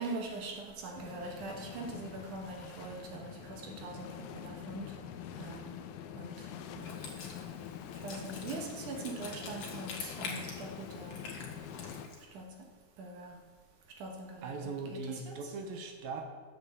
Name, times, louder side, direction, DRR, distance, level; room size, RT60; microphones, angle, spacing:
voice 1, 0.0-5.0 5.4-5.7 6.2-6.5 6.7-7.0 8.0-11.2 12.3-12.5 13.0-13.4 14.0-15.5, right 3 dB, 65° right, 1 dB, 2.4 m, -42 dB
sound 1, 1.0-12.1, left 9 dB, 85° left, 2.6 m, -45 dB
Wind instrument woodwind instrument, 6.8-12.2, left 4 dB, 60° left, 2.8 m, -46 dB
voice 2, 14.4-16.2, right 4 dB, 80° right, 5 dB, 2.8 m, -40 dB
9.3 x 8.0 x 6.9 m, 1.5 s
omnidirectional pair, 4.2 m